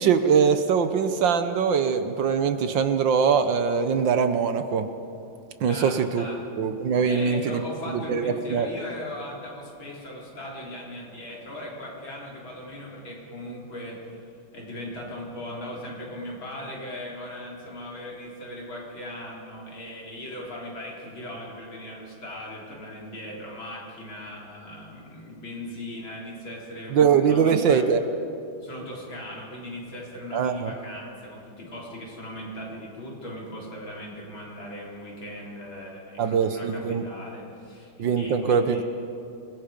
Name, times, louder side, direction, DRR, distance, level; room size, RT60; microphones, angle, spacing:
voice 1, 0.0-4.9 5.6-6.2 6.6-7.6 7.9-8.7 26.9-28.0 30.3-30.7 36.2-37.0 38.0-38.8, right 6 dB, 65° right, 9 dB, 1.6 m, -22 dB
voice 2, 5.7-6.4 7.1-14.1 14.5-27.8 28.6-38.9, left 1 dB, 65° left, -4 dB, 4.9 m, -38 dB
27.5 x 21.0 x 5.2 m, 2.6 s
omnidirectional pair, 2.3 m